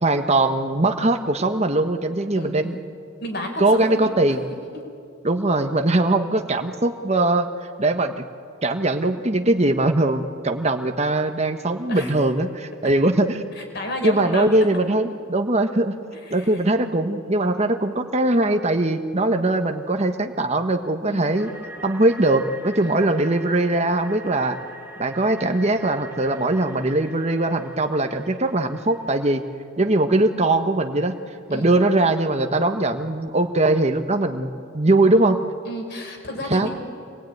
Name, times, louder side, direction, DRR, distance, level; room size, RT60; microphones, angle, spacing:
voice 1, 0.0-2.8 3.6-4.4 5.2-7.5 7.8-8.3 8.6-13.4 14.0-15.9 16.3-21.5 21.8-24.6 25.0-29.4 29.8-31.2 31.5-35.4 36.5-36.7, right 2 dB, 35° right, 6 dB, 1.2 m, -21 dB
voice 2, 2.3-2.8 3.2-4.3 11.9-12.1 13.5-14.5 16.2-16.7 21.1-21.4 22.8-23.1 31.5-31.7 35.6-36.7, left 1 dB, 55° left, 3 dB, 4.6 m, -32 dB
sound 1, 21.3-29.4, right 2 dB, 10° right, 2.3 m, -43 dB
25.5 x 21.0 x 9.3 m, 2.5 s
head